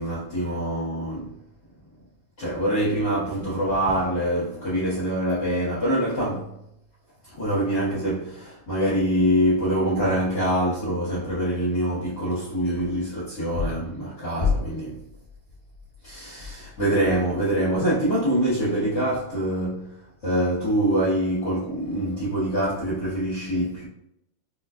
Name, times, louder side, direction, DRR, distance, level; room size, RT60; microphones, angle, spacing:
voice 1, 0.0-1.4 2.4-6.6 7.2-15.0 16.0-19.9 20.2-23.9, equal, 55° left, 1.2 m, -24 dB
6.4 x 2.2 x 2.4 m
omnidirectional pair, 3.6 m